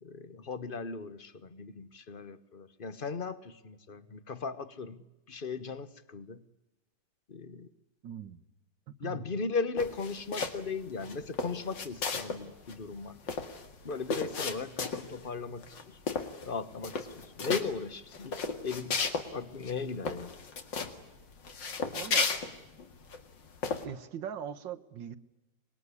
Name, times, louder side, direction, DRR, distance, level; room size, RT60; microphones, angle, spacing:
voice 1, 0.0-5.0 5.3-6.4 7.3-7.7 9.0-13.2 13.8-16.0 16.4-19.0 19.3-20.3, left 4 dB, 35° left, 14 dB, 1.1 m, -37 dB
voice 2, 8.0-8.4 9.0-9.3 21.9-22.3 23.8-25.2, right 9 dB, 75° right, 12 dB, 1.9 m, -40 dB
sound 1, 9.8-10.7 11.0-12.4 12.7-12.8 13.0-15.2 15.6-15.8 16.1-16.5 16.8-17.6 18.1-19.3 19.6-19.7 20.0-20.9 21.4-23.2 23.6-23.8, left 4 dB, 70° left, 2.8 m, -34 dB
25.0 x 21.5 x 9.8 m, 0.99 s
omnidirectional pair, 2.0 m